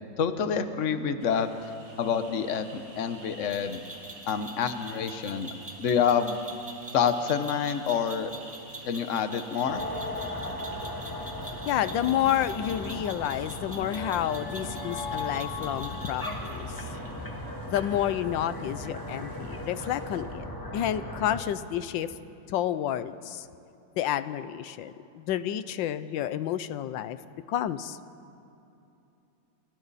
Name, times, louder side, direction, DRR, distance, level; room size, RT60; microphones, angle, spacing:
voice 1, 0.2-1.5 2.0-3.8 4.3-5.5 5.8-6.4 6.9-8.3 8.8-9.9, left 7 dB, 50° left, 9 dB, 1.2 m, -27 dB
sound 1, 1.2-20.2, right 2 dB, 80° right, 3.5 m, -51 dB
sound 2, 3.5-16.6, right 1 dB, 5° right, 2.0 m, -45 dB
sound 3, 9.7-21.4, left 2 dB, 10° left, 2.0 m, -36 dB
voice 2, 11.7-16.7 17.7-20.5 20.7-22.1 22.5-23.5 24.0-27.2 27.5-28.0, left 11 dB, 90° left, 13 dB, 1.4 m, -30 dB
29.5 x 26.5 x 4.2 m, 2.8 s
omnidirectional pair, 2.0 m